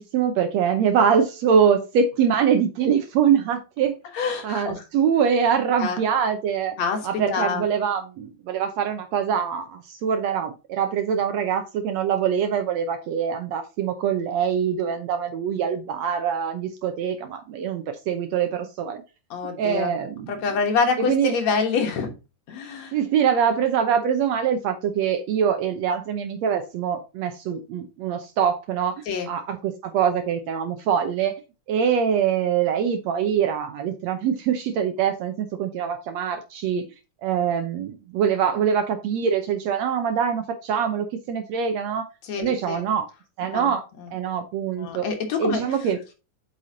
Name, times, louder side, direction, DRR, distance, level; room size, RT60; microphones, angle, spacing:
voice 1, 0.0-4.0 4.4-6.8 7.0-19.0 19.6-20.3 21.0-21.4 22.9-31.4 31.7-36.9 37.2-42.1 42.4-43.1 43.4-43.8 44.1-45.1 45.4-46.1, right 7 dB, 70° right, 1.8 m, -24 dB
voice 2, 4.1-4.8 5.8-6.0 6.8-7.6 19.3-19.9 20.3-22.1 22.5-22.9 29.1-29.3 42.2-42.8 43.5-43.7 44.8-45.6, left 5 dB, 65° left, 2.3 m, -26 dB
8.0 x 5.8 x 2.7 m
omnidirectional pair, 3.6 m